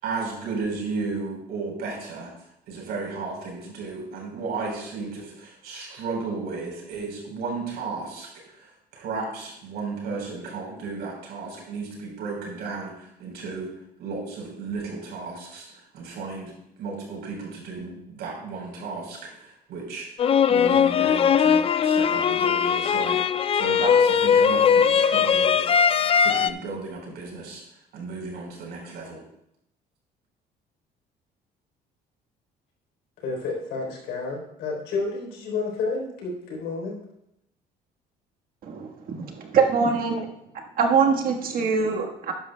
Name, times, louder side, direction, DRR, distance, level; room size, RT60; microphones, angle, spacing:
voice 1, 0.0-2.3 2.7-13.7 14.0-16.5 16.8-20.1 20.5-23.2 23.5-25.6 26.2-27.6 27.9-29.2, right 4 dB, 80° right, -1 dB, 4.1 m, -34 dB
sound 1, 20.2-26.5, left 7 dB, 35° left, 0.4 m, -20 dB
voice 2, 33.2-37.0, left 3 dB, 85° left, -1 dB, 3.7 m, -30 dB
voice 3, 38.6-40.3 40.8-42.3, right 5 dB, 60° right, 2 dB, 1.5 m, -23 dB
12.5 x 10.0 x 2.3 m, 0.77 s
cardioid pair, 110°, 17 cm